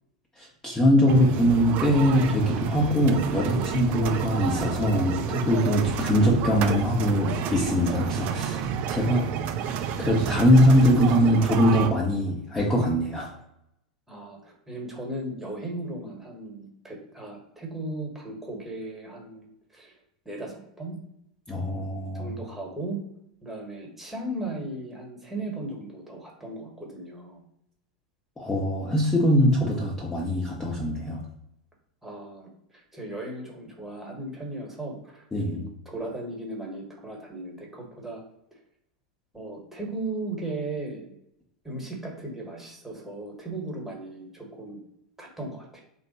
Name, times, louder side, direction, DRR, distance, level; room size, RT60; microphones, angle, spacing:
voice 1, 0.4-8.6 8.9-9.3 10.0-13.3 21.5-22.3 28.4-31.2 35.3-35.6, equal, 15° left, -4 dB, 0.9 m, -22 dB
sound 1, 1.1-11.9, right 7 dB, 45° right, 0.4 m, -30 dB
voice 2, 14.1-20.0 20.2-21.0 22.1-23.0 23.4-27.4 32.0-38.2 39.3-41.1 41.6-44.8 45.2-45.8, right 2 dB, 5° right, -1 dB, 1.3 m, -37 dB
3.4 x 2.2 x 4.1 m, 0.80 s
hypercardioid pair, 90°, 4 cm